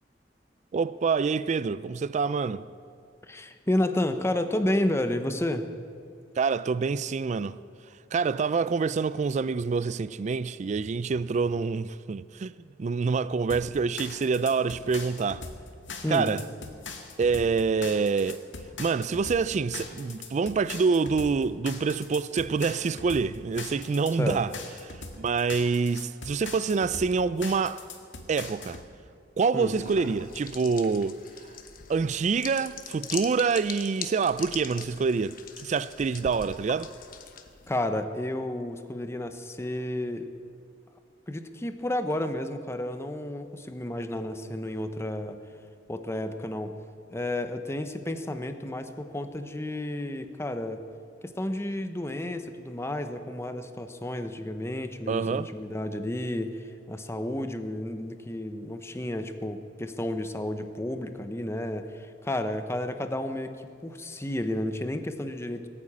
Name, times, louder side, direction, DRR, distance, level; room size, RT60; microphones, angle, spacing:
voice 1, 0.7-2.6 6.4-7.5 8.1-12.5 12.8-15.4 16.1-16.4 17.2-18.5 18.8-24.5 25.2-27.9 28.3-28.8 29.4-31.2 31.9-36.9 55.1-55.5, right 5 dB, 40° right, 0.3 m, -26 dB
voice 2, 3.2-5.7 16.0-16.3 24.2-24.4 29.5-29.7 37.7-40.3 41.3-45.4 45.9-46.7 47.1-50.8 51.2-65.7, left 1 dB, 15° left, 0.8 m, -31 dB
sound 1, 13.5-28.9, left 4 dB, 85° left, 1.8 m, -41 dB
sound 2, 29.6-37.7, left 7 dB, 50° left, 1.1 m, -42 dB
18.5 x 8.8 x 8.5 m
head